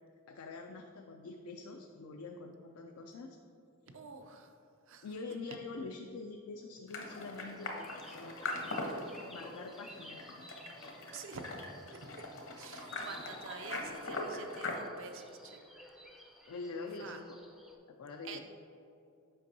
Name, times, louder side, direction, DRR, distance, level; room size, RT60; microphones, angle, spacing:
voice 1, 0.3-3.4 5.0-8.4 8.7-9.0 9.3-10.5 16.5-17.2 17.9-18.4, left 3 dB, 85° left, 3 dB, 0.4 m, -45 dB
voice 2, 3.9-4.5 4.9-5.1 11.1-11.6 11.9-12.2 12.6-15.6 17.0-17.2 18.2-18.4, right 4 dB, 60° right, 5 dB, 0.5 m, -47 dB
sound 1, 6.9-14.7, left 2 dB, 60° left, 0.8 m, -41 dB
sound 2, 7.4-17.8, equal, ahead, 0.4 m, -55 dB
7.7 x 5.3 x 2.7 m, 2.6 s
head